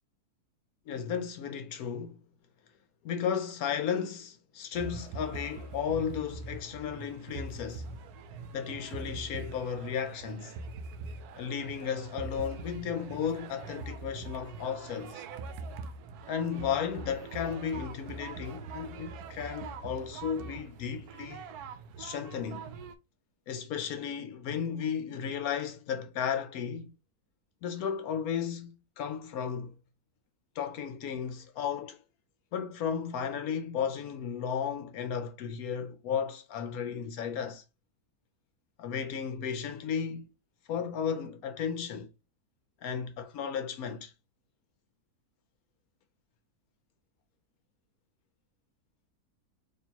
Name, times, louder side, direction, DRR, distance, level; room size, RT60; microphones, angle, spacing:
voice 1, 0.9-2.2 3.0-7.9 8.5-10.6 11.4-15.2 16.3-21.4 22.0-22.7 23.5-26.9 27.6-29.7 30.6-32.0 32.5-37.6 38.8-40.3 40.7-42.1 42.8-44.1, left 7 dB, 75° left, 1.0 m, -34 dB
sound 1, 4.7-22.9, right 4 dB, 80° right, 1.1 m, -43 dB
4.3 x 2.9 x 2.8 m
omnidirectional pair, 1.6 m